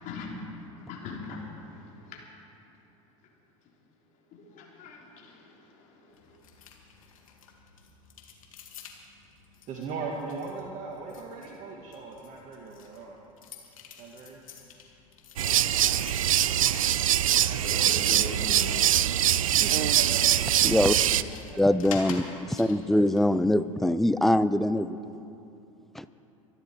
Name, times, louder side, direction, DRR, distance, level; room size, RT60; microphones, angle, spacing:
voice 1, 0.0-2.2 4.3-6.4 17.5-19.0, left 3 dB, 45° left, -1 dB, 3.5 m, -41 dB
sound 1, 6.1-23.2, left 6 dB, 75° left, 2.0 m, -48 dB
voice 2, 9.7-13.2 14.0-14.4 19.6-20.2 21.2-21.4, right 4 dB, 45° right, -1 dB, 1.9 m, -39 dB
sound 2, 15.4-21.2, right 11 dB, 75° right, 0.5 m, -23 dB
voice 3, 20.6-20.9 21.6-22.2 22.5-25.0 26.0-26.1, left 1 dB, ahead, 14 dB, 0.5 m, -23 dB
24.5 x 11.5 x 4.6 m, 2.8 s
hypercardioid pair, 80°, 17 cm